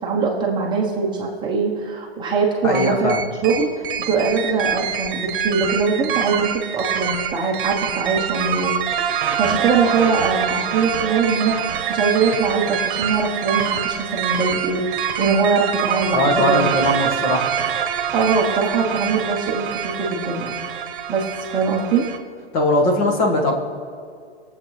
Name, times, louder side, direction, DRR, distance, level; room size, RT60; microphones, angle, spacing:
voice 1, 0.0-8.7 9.1-16.7 18.1-20.6 21.1-22.0, right 4 dB, 15° right, -2 dB, 1.0 m, -22 dB
voice 2, 2.6-3.2 16.1-17.5 22.5-23.5, left 1 dB, 35° left, 2 dB, 1.6 m, -19 dB
sound 1, 2.7-22.2, right 8 dB, 55° right, 1.1 m, -25 dB
21.5 x 7.5 x 3.3 m, 2.2 s
hypercardioid pair, 150°, 32 cm